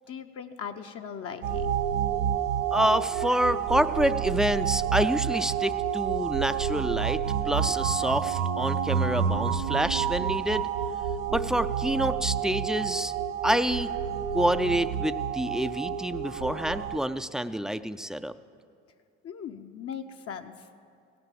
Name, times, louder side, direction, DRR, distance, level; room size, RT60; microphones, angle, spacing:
voice 1, 0.1-1.8 19.2-20.7, left 7 dB, 50° left, 5 dB, 0.7 m, -39 dB
sound 1, 1.4-17.0, right 8 dB, 85° right, 0.7 m, -29 dB
voice 2, 2.7-7.2 7.5-10.7 11.3-13.1 13.4-13.9 14.3-18.3, equal, ahead, 12 dB, 0.3 m, -27 dB
16.5 x 6.0 x 7.6 m, 2.3 s
supercardioid pair, 70°, 30 cm